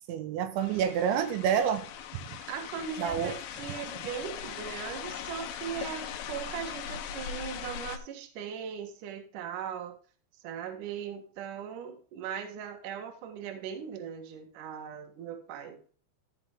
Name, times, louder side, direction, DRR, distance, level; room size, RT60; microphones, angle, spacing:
voice 1, 0.1-1.8 3.0-3.3, right 8 dB, 80° right, 3.4 m, -28 dB
sound 1, 0.6-8.0, left 9 dB, 85° left, 3.2 m, -40 dB
voice 2, 2.5-9.9 10.3-15.8, right 8 dB, 55° right, 2.5 m, -39 dB
13.5 x 5.8 x 3.6 m
omnidirectional pair, 5.3 m